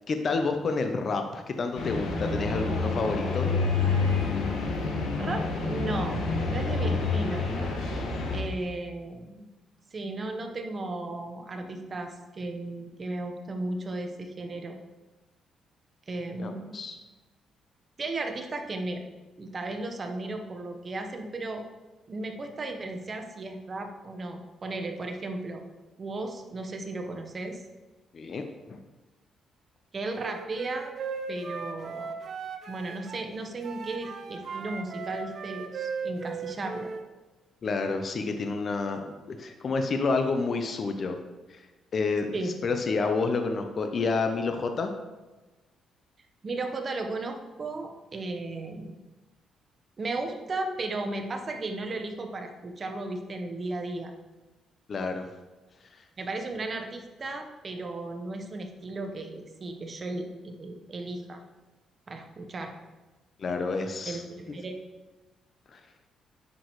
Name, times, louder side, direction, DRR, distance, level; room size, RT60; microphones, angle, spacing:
voice 1, 0.1-3.5 16.4-17.0 28.1-28.8 37.6-41.2 41.5-41.6 41.9-42.3 42.6-44.9 54.9-55.2 63.4-64.2 64.5-64.6 65.7-65.8, left 4 dB, 45° left, 6 dB, 0.7 m, -29 dB
sound 1, 1.7-8.4, left 4 dB, 85° left, 1.6 m, -28 dB
voice 2, 5.2-7.7 8.3-9.5 9.9-14.8 16.1-16.8 18.0-19.0 19.4-21.6 22.1-25.6 26.0-27.6 29.9-30.9 31.3-32.1 32.7-36.9 42.3-42.6 46.4-48.9 50.0-54.1 56.2-61.4 62.1-62.7 64.1-64.8, right 2 dB, 35° right, 4 dB, 1.1 m, -35 dB
Wind instrument woodwind instrument, 30.1-33.3 33.6-37.0, right 5 dB, 60° right, 0.8 m, -37 dB
9.5 x 6.2 x 3.2 m, 1.2 s
cardioid pair, 90°, 0 cm